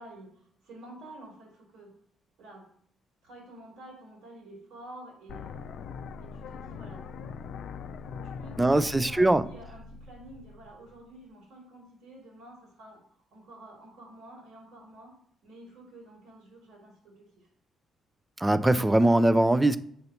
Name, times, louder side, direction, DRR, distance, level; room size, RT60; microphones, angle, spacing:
voice 1, 0.0-1.9 2.4-2.7 3.2-5.8 6.2-7.1 8.0-13.0 13.3-15.1 15.4-17.5, right 1 dB, 90° right, 2.9 m, -49 dB
sound 1, 5.3-11.3, left 6 dB, 75° left, 0.4 m, -42 dB
voice 2, 8.6-9.4 18.4-19.8, right 1 dB, 15° right, 0.4 m, -21 dB
7.7 x 2.9 x 5.6 m
cardioid pair, 90°, 0 cm